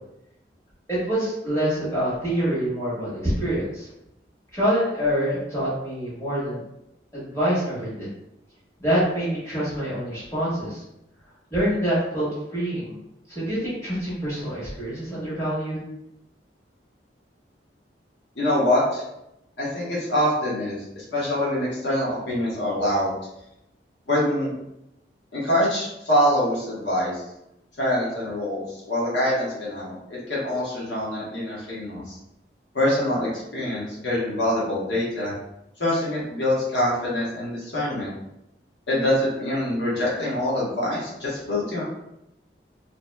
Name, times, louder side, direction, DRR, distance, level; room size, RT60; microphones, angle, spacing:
voice 1, 0.9-3.9 4.5-6.6 7.1-8.1 8.8-10.8 11.5-13.0 13.3-15.8, equal, 20° left, -10 dB, 1.4 m, -26 dB
voice 2, 18.4-19.0 19.6-23.1 24.1-24.5 25.3-27.2 27.8-32.2 32.7-35.3 35.8-38.1 38.9-41.8, left 1 dB, 90° left, -7 dB, 1.2 m, -25 dB
3.0 x 2.8 x 2.2 m, 0.85 s
head